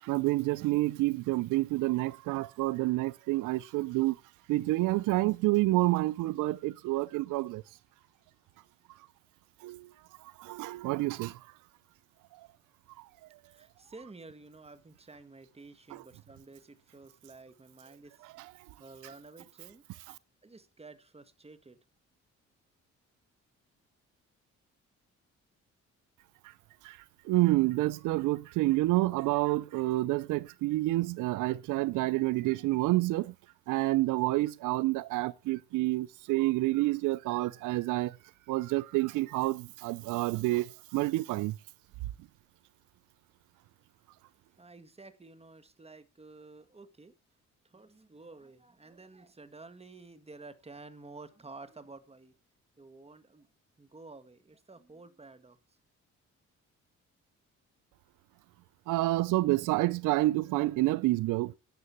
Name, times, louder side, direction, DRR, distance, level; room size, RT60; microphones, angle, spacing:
voice 1, 0.0-4.2 4.5-7.6 9.6-9.9 10.4-11.4 15.9-16.0 18.4-18.5 26.8-27.0 27.3-33.3 33.7-38.1 38.5-41.5 58.9-61.5, right 19 dB, 90° right, 0.5 m, -28 dB
voice 2, 13.5-19.8 20.4-21.8 44.6-47.1 47.6-52.3 52.8-53.5 53.8-55.8, right 3 dB, 20° right, 1.8 m, -51 dB
11.5 x 7.6 x 7.1 m
cardioid pair, 90°, 30 cm